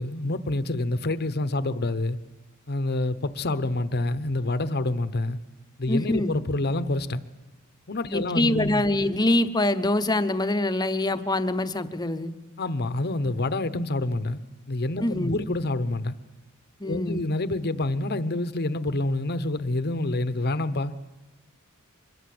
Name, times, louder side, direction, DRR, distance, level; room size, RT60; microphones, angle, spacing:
voice 1, 0.0-2.2 2.7-5.4 5.8-7.2 7.9-8.8 12.6-14.4 14.7-16.2 16.8-20.9, left 2 dB, 50° left, 1.0 m, -27 dB
voice 2, 5.9-6.4 8.1-12.3 15.0-15.4 16.8-17.2, left 1 dB, 20° left, 1.0 m, -24 dB
24.0 x 21.5 x 7.9 m
head